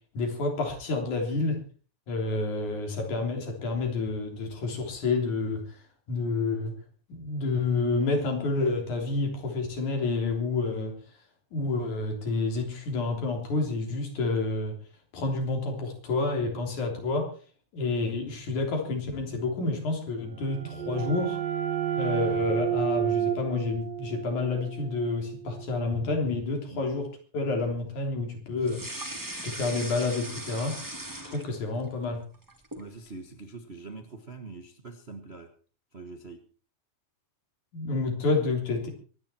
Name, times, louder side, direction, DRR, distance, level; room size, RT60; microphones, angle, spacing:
voice 1, 0.1-1.6 2.1-5.8 6.1-6.8 7.1-11.0 11.5-14.8 15.1-17.3 17.7-21.4 22.0-30.8 31.2-32.2 37.7-38.9, left 3 dB, 85° left, 2 dB, 4.9 m, -29 dB
sound 1, 20.3-25.8, right 10 dB, 65° right, 2.3 m, -31 dB
sound 2, 28.6-31.8 32.2-32.9, right 1 dB, 10° right, 1.6 m, -39 dB
voice 2, 32.8-35.5 35.9-36.4, right 3 dB, 40° right, 5 dB, 0.9 m, -43 dB
24.0 x 10.0 x 4.5 m, 0.39 s
omnidirectional pair, 3.3 m